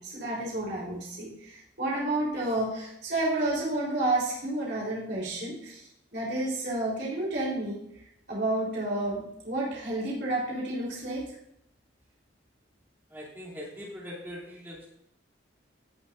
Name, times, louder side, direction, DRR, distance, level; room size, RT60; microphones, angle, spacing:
voice 1, 0.0-11.4, right 2 dB, 60° right, -6 dB, 4.0 m, -31 dB
voice 2, 13.1-14.9, equal, 10° right, -6 dB, 3.1 m, -41 dB
17.0 x 7.2 x 2.7 m, 0.78 s
head